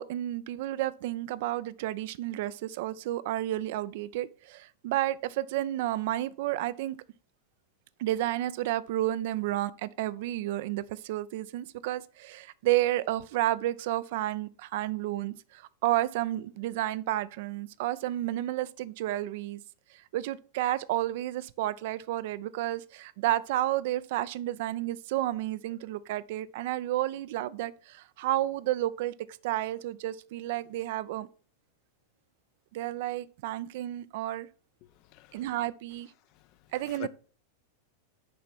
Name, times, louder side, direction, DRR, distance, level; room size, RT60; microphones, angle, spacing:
voice 1, 0.0-7.0 8.0-19.6 19.9-29.1 29.4-31.3 32.7-34.5 35.3-36.1 36.7-37.1, right 14 dB, 50° right, 0.4 m, -31 dB
voice 2, 34.8-35.5 36.3-37.1, left 17 dB, 40° left, 0.4 m, -47 dB
6.8 x 4.7 x 5.9 m
figure-of-eight pair, 90°, 0 cm